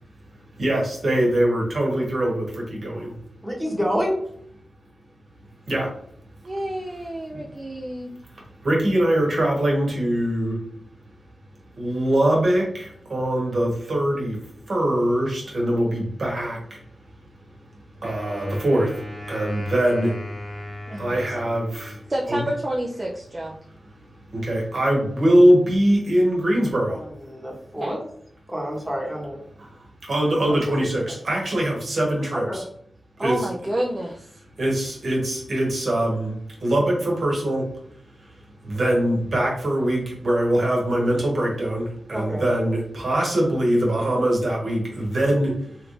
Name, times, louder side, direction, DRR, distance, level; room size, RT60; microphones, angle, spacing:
voice 1, 0.6-3.1 5.7-5.9 7.3-7.4 8.6-10.6 11.8-14.3 14.7-16.6 18.0-18.9 19.3-20.1 21.0-21.9 22.3-22.5 24.3-27.0 30.1-32.6 33.2-33.5 34.6-36.3 36.6-37.6 38.6-45.5, right 1 dB, 65° right, -2 dB, 1.1 m, -22 dB
voice 2, 3.4-4.2 26.9-28.0 28.5-29.4 30.5-30.7 32.5-32.6 42.1-42.4, equal, 5° right, -3 dB, 1.0 m, -28 dB
voice 3, 6.4-8.1 20.9-21.1 22.1-23.6 27.8-27.9 33.2-34.3, right 1 dB, 30° right, -1 dB, 0.4 m, -29 dB
Wind instrument woodwind instrument, 18.0-22.3, left 1 dB, 35° left, 0.8 m, -37 dB
3.2 x 2.5 x 3.1 m, 0.65 s
cardioid pair, 65°, 0 cm